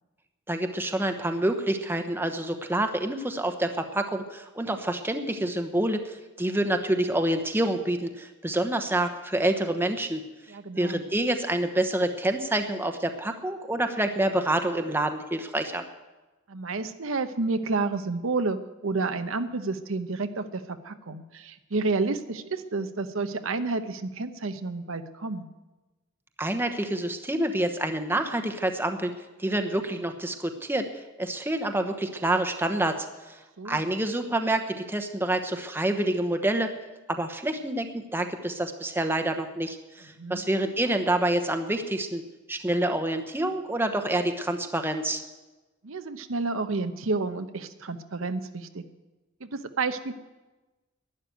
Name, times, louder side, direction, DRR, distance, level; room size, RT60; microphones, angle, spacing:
voice 1, 0.5-10.2 10.8-15.8 26.4-29.1 29.4-30.9 31.2-33.4 33.6-36.7 37.1-42.2 42.5-45.2, right 1 dB, 10° right, 6 dB, 1.0 m, -27 dB
voice 2, 10.5-11.0 16.5-25.5 33.6-33.8 40.2-40.4 45.8-48.8 49.4-50.1, right 3 dB, 75° right, 9 dB, 0.9 m, -30 dB
12.0 x 11.0 x 9.3 m, 1.1 s
head